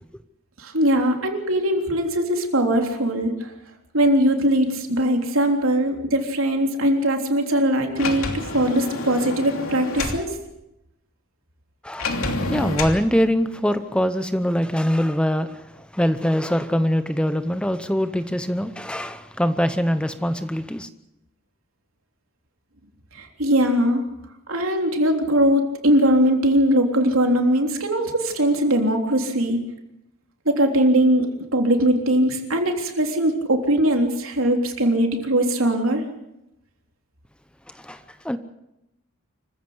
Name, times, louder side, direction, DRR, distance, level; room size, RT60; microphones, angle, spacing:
voice 1, 0.6-3.5 3.9-10.4 23.1-24.0 24.5-29.6 30.5-36.0, right 1 dB, 80° right, 3.5 m, -20 dB
Sliding door, 8.0-10.2 12.0-13.0, left 2 dB, 85° left, 3.0 m, -28 dB
voice 2, 11.8-20.9 37.7-38.4, equal, 5° left, 0.8 m, -23 dB
25.5 x 15.5 x 8.0 m
head